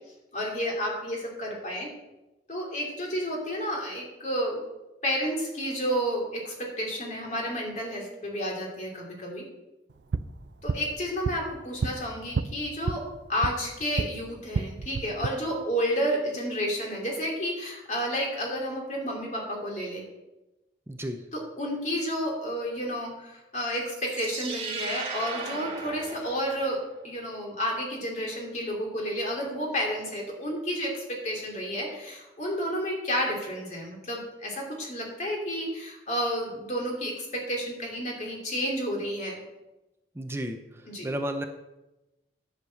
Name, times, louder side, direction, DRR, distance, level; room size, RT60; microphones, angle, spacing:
voice 1, 0.3-1.9 2.5-4.6 5.0-9.5 10.6-20.0 21.3-39.4 40.9-41.1, equal, 45° left, 0 dB, 2.7 m, -31 dB
sound 1, 9.9-14.1 14.4-15.3, right 4 dB, 80° right, 0.5 m, -32 dB
voice 2, 20.9-21.2 40.1-41.5, equal, 15° right, 6 dB, 0.7 m, -33 dB
sound 2, 23.8-26.9, right 4 dB, 35° right, 1.7 m, -37 dB
9.9 x 6.7 x 6.3 m, 0.98 s
head